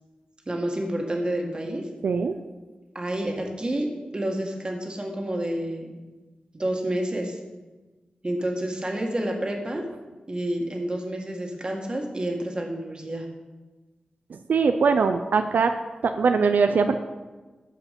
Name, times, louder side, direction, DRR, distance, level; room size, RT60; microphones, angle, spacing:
voice 1, 0.5-1.9 3.0-3.9 4.1-6.0 6.5-7.4 8.2-9.9 10.3-13.3, right 1 dB, 30° right, 1 dB, 1.8 m, -29 dB
voice 2, 2.0-2.3 14.3-15.7 16.2-17.0, right 5 dB, 85° right, 7 dB, 0.5 m, -21 dB
14.0 x 4.9 x 5.3 m, 1.2 s
wide cardioid pair, 70°, 3 cm